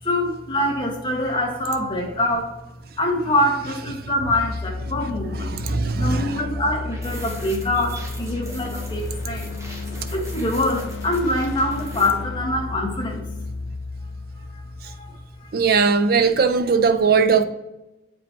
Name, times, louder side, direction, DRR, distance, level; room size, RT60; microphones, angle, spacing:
voice 1, 0.0-2.6 3.0-5.6 6.0-9.5 10.1-13.2 14.3-15.5 16.0-16.1, left 1 dB, 25° left, 1.4 m, -25 dB
sound 1, 3.9-15.7, left 3 dB, 65° left, 0.5 m, -33 dB
voice 2, 5.4-6.4 15.5-17.4, right 5 dB, 50° right, 0.5 m, -19 dB
sound 2, 6.7-12.1, equal, 15° right, 1.0 m, -40 dB
7.7 x 5.1 x 2.9 m
head